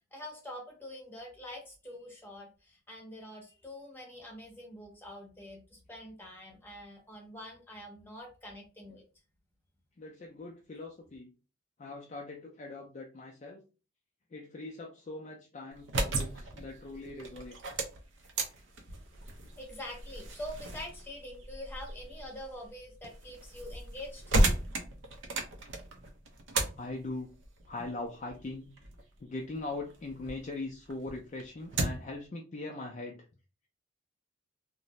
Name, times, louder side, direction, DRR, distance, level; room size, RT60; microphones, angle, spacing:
voice 1, 0.1-9.0 19.6-24.2, left 1 dB, 10° left, -1 dB, 0.7 m, -45 dB
voice 2, 10.0-11.3 11.8-13.6 14.3-17.6 26.8-27.3 27.7-28.7 29.2-33.2, left 2 dB, 35° left, 0 dB, 0.3 m, -41 dB
sound 1, 15.7-30.4 30.8-32.2, right 2 dB, 65° right, 0.5 m, -35 dB
2.5 x 2.0 x 2.9 m, 0.33 s
head